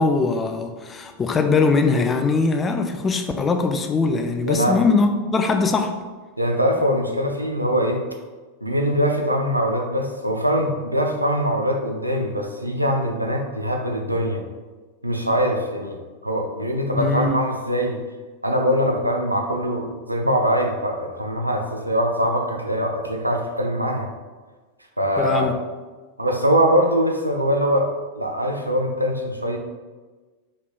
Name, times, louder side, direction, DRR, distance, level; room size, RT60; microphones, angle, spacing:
voice 1, 0.0-5.9 17.0-17.4 25.2-25.5, left 4 dB, 20° left, 6 dB, 0.3 m, -21 dB
voice 2, 6.4-8.0 8.6-14.4 15.0-16.0 16.2-18.0 18.4-24.1 25.0-25.5 26.2-29.6, equal, 85° right, 3 dB, 0.4 m, -22 dB
4.3 x 3.3 x 2.4 m, 1.3 s
figure-of-eight pair, 90°, 0 cm